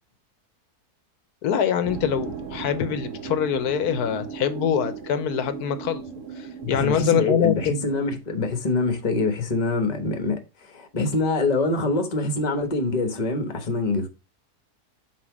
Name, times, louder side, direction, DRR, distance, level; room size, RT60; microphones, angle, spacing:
voice 1, 1.4-6.0 6.4-7.7, left 8 dB, 80° left, 1.4 m, -24 dB
sound 1, 1.8-8.2, right 6 dB, 60° right, 1.3 m, -36 dB
voice 2, 6.7-14.1, left 3 dB, 30° left, 1.2 m, -25 dB
5.8 x 4.7 x 4.8 m
omnidirectional pair, 1.6 m